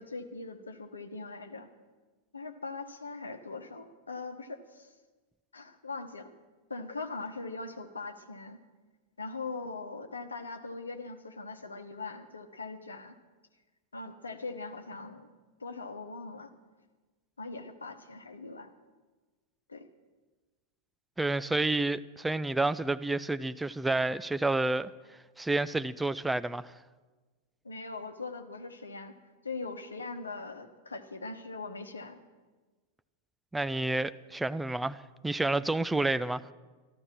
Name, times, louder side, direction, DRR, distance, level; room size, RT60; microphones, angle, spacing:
voice 1, 0.0-1.7 2.3-4.9 5.5-6.3 6.7-8.6 9.2-13.1 13.9-15.3 15.6-16.5 17.4-18.7 19.7-19.8 27.6-29.1 29.4-32.2, left 3 dB, 75° left, 1.0 m, -41 dB
voice 2, 21.2-24.9 25.4-26.7 33.5-36.4, right 2 dB, 5° right, 0.4 m, -29 dB
14.0 x 12.0 x 6.1 m
figure-of-eight pair, 90°, 0 cm